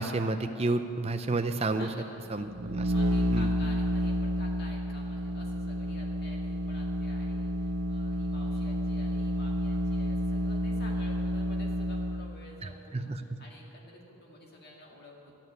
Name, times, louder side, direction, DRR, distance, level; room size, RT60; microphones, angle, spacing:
voice 1, 0.0-1.9 2.3-2.9 3.3-3.5 12.9-13.2, right 2 dB, 30° right, 8 dB, 0.5 m, -30 dB
voice 2, 1.8-15.4, left 1 dB, 45° left, -1 dB, 2.0 m, -50 dB
sound 1, 2.4-12.3, equal, 75° right, 0.5 m, -30 dB
12.0 x 7.4 x 9.3 m, 2.8 s
head